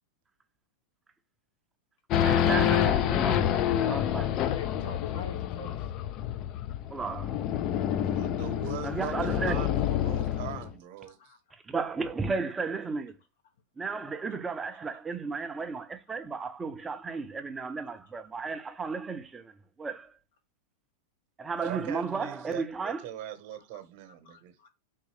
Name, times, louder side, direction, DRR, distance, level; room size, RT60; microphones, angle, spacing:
Race car auto racing / Idling / Accelerating revving vroom, 2.1-10.7, left 10 dB, 40° left, 0.4 m, -28 dB
voice 1, 2.2-4.4 6.9-7.4 8.8-9.7 11.7-13.1 13.8-19.5 19.8-20.1 21.4-23.0, right 4 dB, 15° right, 0.6 m, -34 dB
voice 2, 4.3-5.9 11.1-11.4 17.1-17.2 22.9-23.0 23.5-23.8 24.2-24.7, left 6 dB, 75° left, 0.8 m, -44 dB
voice 3, 8.1-11.3 21.6-24.5, right 10 dB, 55° right, 0.9 m, -41 dB
3.7 x 2.7 x 3.2 m
hypercardioid pair, 125°, 0 cm